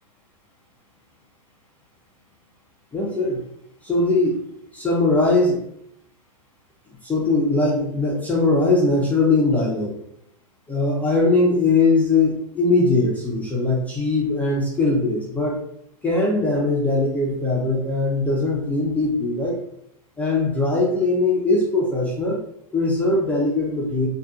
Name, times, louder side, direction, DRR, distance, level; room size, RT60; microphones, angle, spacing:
voice 1, 2.9-3.4 3.8-4.4 4.7-5.7 7.0-10.0 10.7-15.6 16.0-19.6 20.2-22.4 22.7-24.1, left 2 dB, 10° left, -4 dB, 0.3 m, -20 dB
2.6 x 2.1 x 2.3 m, 0.71 s
supercardioid pair, 145°, 19 cm